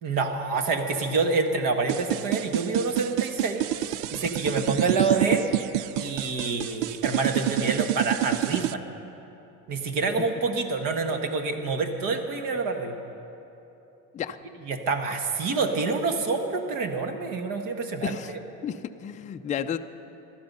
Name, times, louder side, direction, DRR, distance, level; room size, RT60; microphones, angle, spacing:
voice 1, 0.0-3.6 4.1-5.5 6.0-8.8 9.7-12.9 14.7-18.4, right 4 dB, 60° right, 5 dB, 1.5 m, -27 dB
sound 1, 1.9-8.7, right 14 dB, 90° right, 0.5 m, -27 dB
voice 2, 18.0-18.3 18.6-19.8, left 8 dB, 20° left, 8 dB, 0.4 m, -32 dB
16.5 x 12.0 x 5.5 m, 2.9 s
cardioid pair, 120°, 37 cm